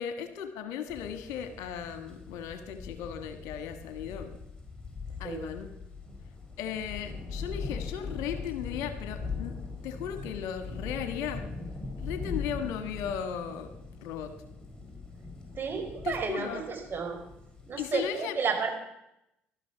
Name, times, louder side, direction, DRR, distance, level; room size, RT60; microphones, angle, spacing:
voice 1, 0.0-4.4 5.2-5.7 6.6-9.6 9.8-11.4 12.0-13.7 14.0-14.3 16.0-16.6 17.8-18.4, left 8 dB, 65° left, 8 dB, 1.5 m, -36 dB
sound 1, 0.9-18.1, left 4 dB, 15° left, 4.8 m, -41 dB
voice 2, 15.5-17.2 17.7-18.8, right 5 dB, 40° right, 3 dB, 4.1 m, -32 dB
18.0 x 12.5 x 5.7 m, 0.86 s
figure-of-eight pair, 55°, 6 cm